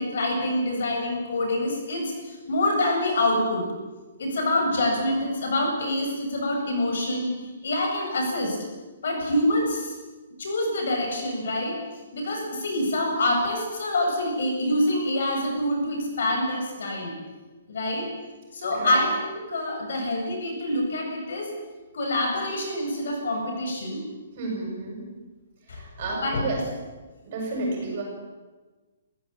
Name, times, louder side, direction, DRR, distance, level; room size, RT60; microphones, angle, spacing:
voice 1, 0.0-3.7 4.2-7.3 7.6-8.6 9.0-9.9 10.4-11.8 12.1-17.2 17.7-18.1 18.5-21.5 21.9-24.0 25.7-25.8 26.1-26.5, left 1 dB, 55° left, 2 dB, 7.9 m, -26 dB
voice 2, 24.4-25.0 25.7-26.6 27.2-28.0, right 2 dB, 30° right, 0 dB, 7.5 m, -31 dB
27.0 x 15.5 x 8.9 m, 1.2 s
hypercardioid pair, 180°, 0 cm